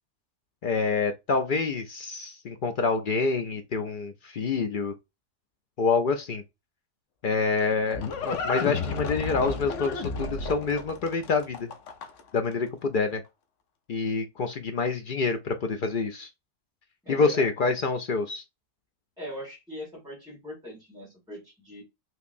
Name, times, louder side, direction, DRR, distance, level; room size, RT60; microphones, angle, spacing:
voice 1, 0.6-4.9 5.8-6.4 7.2-11.7 12.3-13.2 13.9-16.3 17.1-18.4, left 4 dB, 60° left, 0.6 m, -27 dB
Livestock farm animals working animals, 7.3-12.4, left 4 dB, 85° left, 1.0 m, -33 dB
voice 2, 17.0-17.5 19.2-21.8, left 1 dB, 5° right, 1.4 m, -40 dB
3.4 x 2.9 x 2.5 m
omnidirectional pair, 1.2 m